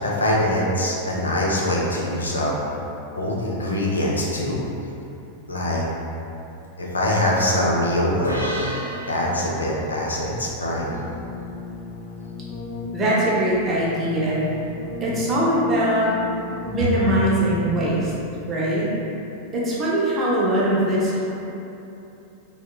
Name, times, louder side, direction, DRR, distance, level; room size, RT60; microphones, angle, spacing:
voice 1, 0.0-2.5 3.2-4.6 5.5-5.9 6.8-8.4 9.1-11.0, left 1 dB, 75° left, -3 dB, 0.4 m, -23 dB
sound 1, 8.2-11.7, equal, 90° right, 0.3 m, -33 dB
Keyboard (musical), 10.7-18.3, left 3 dB, 25° left, 0.7 m, -34 dB
voice 2, 12.9-14.4 15.0-16.1 16.7-18.1 18.5-18.9 19.5-21.3, right 1 dB, 25° right, -6 dB, 0.6 m, -21 dB
3.5 x 2.0 x 2.3 m, 2.9 s
figure-of-eight pair, 90°, 0 cm